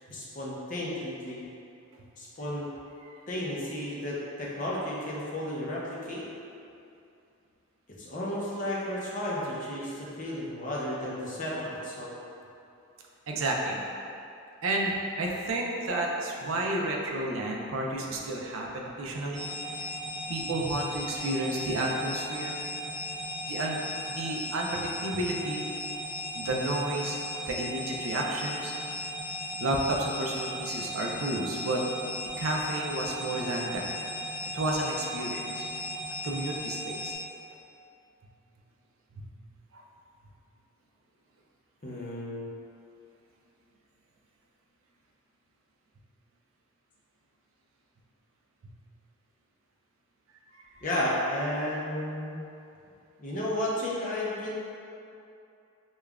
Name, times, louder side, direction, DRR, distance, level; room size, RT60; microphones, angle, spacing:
voice 1, 0.1-1.4 2.2-2.7 3.3-6.2 8.0-12.1 41.8-42.5 50.8-52.5 53.2-54.5, left 1 dB, 35° left, -6 dB, 0.6 m, -33 dB
voice 2, 13.3-13.8 14.6-19.5 19.8-19.9 20.3-22.6 23.5-23.8 24.1-25.6 26.4-27.2 27.5-28.7 29.6-31.9 32.4-33.9 34.5-35.6 36.2-37.1 39.1-39.3 39.7-39.8 50.7-50.8, right 2 dB, 65° right, -1 dB, 0.4 m, -31 dB
sound 1, 19.3-37.1, left 1 dB, 20° right, 0.8 m, -36 dB
5.1 x 2.3 x 2.3 m, 2.6 s
head